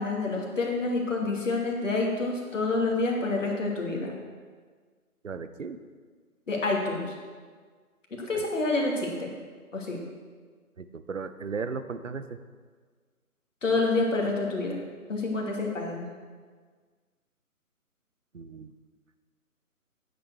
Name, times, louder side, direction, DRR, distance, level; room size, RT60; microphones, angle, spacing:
voice 1, 0.0-4.1 6.5-7.1 8.2-9.3 9.7-10.0 13.6-14.8 15.1-16.1, left 3 dB, 55° left, -1 dB, 2.5 m, -28 dB
voice 2, 5.2-5.8 8.3-8.4 10.8-12.4 18.3-18.8, right 5 dB, 55° right, 11 dB, 0.8 m, -36 dB
9.5 x 7.4 x 6.5 m, 1.5 s
figure-of-eight pair, 155°, 45 cm